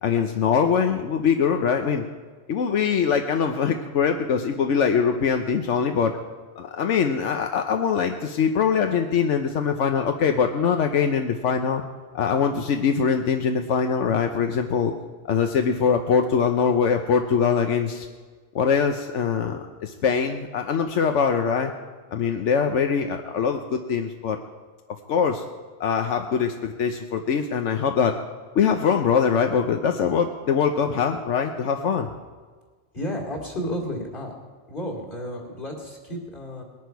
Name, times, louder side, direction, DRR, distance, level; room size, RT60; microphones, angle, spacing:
voice 1, 0.0-2.0 2.5-6.2 6.6-11.8 12.1-14.9 15.3-18.1 18.5-21.7 22.1-24.4 25.1-25.4 25.8-28.2 28.5-32.1, left 6 dB, 85° left, 5 dB, 1.1 m, -23 dB
voice 2, 32.9-34.3 34.7-36.6, equal, 45° left, -1 dB, 3.0 m, -32 dB
20.5 x 11.0 x 4.7 m, 1.5 s
omnidirectional pair, 1.2 m